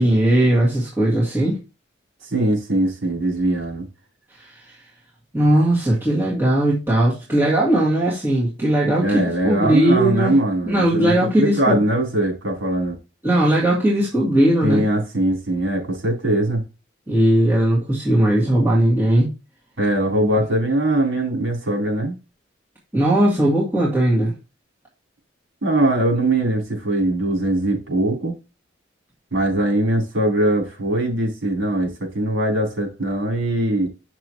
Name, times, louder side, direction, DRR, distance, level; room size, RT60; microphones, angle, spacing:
voice 1, 0.0-1.6 4.4-4.5 5.3-10.4 10.7-11.8 13.2-14.8 17.1-19.3 22.9-24.3, right 1 dB, 10° right, 2.1 m, -18 dB
voice 2, 2.2-3.9 9.0-13.0 14.6-16.6 19.8-22.1 25.6-28.4 29.3-33.9, right 1 dB, 85° right, 3.7 m, -21 dB
8.2 x 6.0 x 3.0 m
head